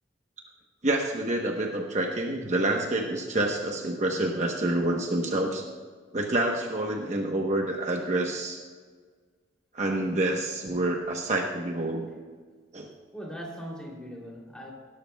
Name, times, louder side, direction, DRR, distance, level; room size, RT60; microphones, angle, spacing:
voice 1, 0.8-5.6 6.1-8.6 9.7-12.1 12.7-12.9, right 1 dB, 40° right, 1 dB, 1.0 m, -27 dB
voice 2, 13.1-14.7, equal, 5° left, -3 dB, 3.0 m, -40 dB
18.5 x 12.5 x 2.3 m, 1.5 s
head